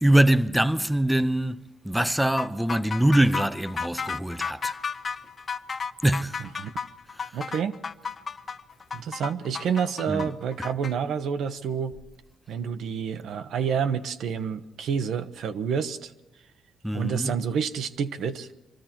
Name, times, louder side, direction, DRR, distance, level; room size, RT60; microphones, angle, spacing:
voice 1, 0.0-4.7 6.0-6.4 7.2-7.3 10.1-10.3 16.8-17.4, right 1 dB, 5° right, 0.6 m, -23 dB
sound 1, 2.4-10.9, left 5 dB, 35° left, 0.6 m, -33 dB
voice 2, 7.3-7.8 8.9-12.0 12.5-16.1 16.9-18.5, right 7 dB, 75° right, 0.9 m, -28 dB
24.0 x 13.5 x 4.4 m
cardioid pair, 95°, 0 cm